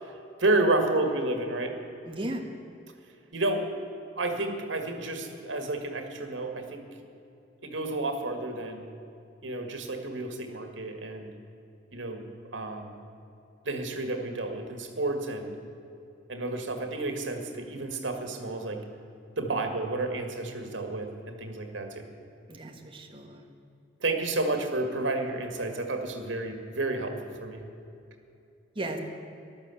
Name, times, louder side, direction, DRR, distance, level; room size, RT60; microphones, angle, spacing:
voice 1, 0.4-1.8 3.3-3.7 4.2-6.9 7.6-8.9 9.4-11.3 11.9-12.2 12.5-13.0 13.6-15.6 16.3-18.9 19.4-22.1 24.0-27.6, right 2 dB, 90° right, 5 dB, 1.9 m, -30 dB
voice 2, 2.0-2.4 22.5-23.5 28.7-29.0, right 1 dB, 30° right, 3 dB, 1.5 m, -35 dB
13.5 x 12.0 x 8.4 m, 2.7 s
head